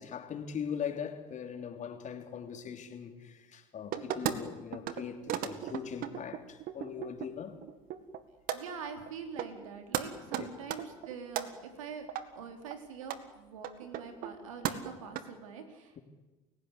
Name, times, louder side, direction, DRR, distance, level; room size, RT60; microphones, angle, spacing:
voice 1, 0.0-7.6 10.2-10.5, left 7 dB, 45° left, 3.4 m, -40 dB
sound 1, 3.9-4.3 4.7-5.0 5.3-7.3 7.6-8.2 8.5-8.6 9.1-9.2 9.4-9.7 9.9-10.0 10.3-11.5 12.1-12.2 12.7-12.8 13.0-13.2 13.6-14.4 14.6-15.2, right 11 dB, 60° right, 2.0 m, -35 dB
voice 2, 8.5-16.0, right 6 dB, 85° right, 3.6 m, -45 dB
30.0 x 17.0 x 8.3 m
hypercardioid pair, 70°, 17 cm